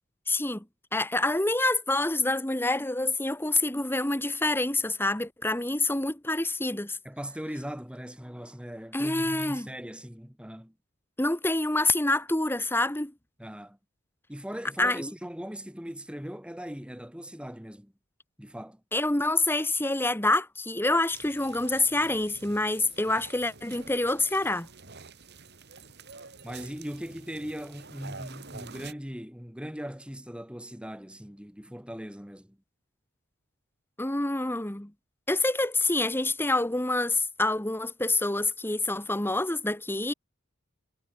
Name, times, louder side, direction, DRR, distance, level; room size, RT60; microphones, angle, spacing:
voice 1, 0.3-0.6 0.9-7.0 8.9-9.7 11.2-13.1 14.8-15.1 18.9-24.7 34.0-34.9 35.3-40.1, left 2 dB, 10° left, 1.3 m, -27 dB
voice 2, 7.0-10.7 13.4-13.8 14.3-17.9 18.4-18.8 26.4-32.6, equal, 5° right, 3.0 m, -39 dB
sound 1, 21.1-28.9, right 4 dB, 50° right, 5.1 m, -48 dB
head